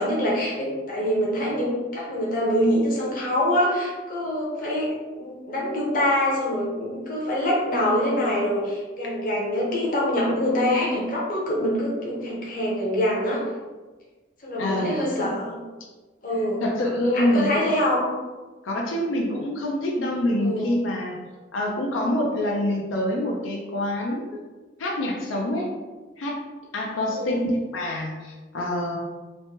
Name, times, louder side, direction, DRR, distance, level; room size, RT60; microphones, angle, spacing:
voice 1, 0.0-13.4 14.4-15.6 16.2-16.6 17.2-18.1 20.3-20.8 27.1-27.4, left 1 dB, 45° left, -4 dB, 0.7 m, -25 dB
voice 2, 14.6-15.0 16.6-17.5 18.6-21.2 21.5-24.4 24.8-25.7 26.2-26.4 26.7-27.4 27.7-29.0, left 1 dB, 90° left, -1 dB, 0.5 m, -26 dB
3.1 x 2.1 x 2.8 m, 1.3 s
head